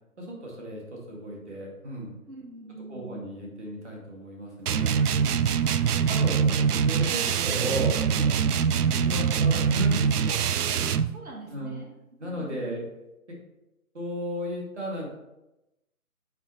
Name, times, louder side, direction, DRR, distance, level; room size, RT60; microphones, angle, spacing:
voice 1, 0.2-2.1 2.9-5.1 6.1-8.4 8.9-10.4 11.5-11.8 12.2-12.8 13.9-15.1, equal, 50° right, -2 dB, 2.3 m, -35 dB
voice 2, 2.3-3.2 10.8-11.9 12.2-12.7, right 2 dB, 70° right, -1 dB, 2.2 m, -44 dB
sound 1, 4.7-11.1, right 7 dB, 85° right, 0.5 m, -24 dB
6.0 x 5.4 x 4.2 m, 0.94 s
hypercardioid pair, 175°, 44 cm